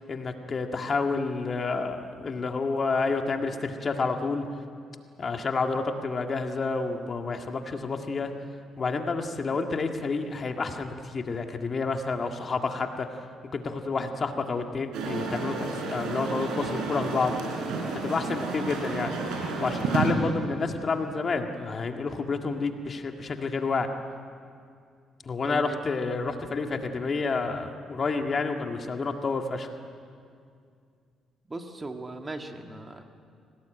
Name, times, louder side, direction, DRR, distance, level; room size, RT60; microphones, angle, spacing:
voice 1, 0.1-4.5 5.2-8.3 8.8-13.1 13.5-17.4 17.9-19.1 19.6-23.9 25.3-29.7, left 4 dB, 40° left, 4 dB, 1.9 m, -29 dB
sound 1, 14.9-20.1, right 4 dB, 90° right, 4.4 m, -31 dB
voice 2, 25.4-25.8 26.6-26.7 31.5-33.0, right 2 dB, 25° right, 4 dB, 2.1 m, -38 dB
25.0 x 18.0 x 9.1 m, 2.3 s
cardioid pair, 90°, 0 cm